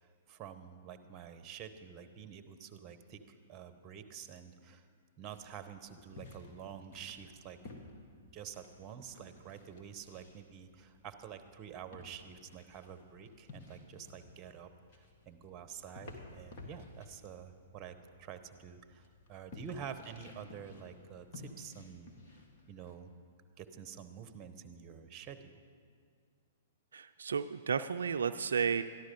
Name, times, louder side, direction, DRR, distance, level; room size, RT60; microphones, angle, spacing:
voice 1, 0.0-4.9 5.2-7.6 8.2-22.1 22.7-23.1 23.6-25.5, right 8 dB, 30° right, 10 dB, 0.9 m, -48 dB
sound 1, 5.3-22.9, left 3 dB, 50° left, 1.7 m, -55 dB
voice 2, 26.9-28.8, right 6 dB, 80° right, 9 dB, 0.3 m, -32 dB
13.5 x 11.0 x 5.2 m, 2.1 s
hypercardioid pair, 120°, 0 cm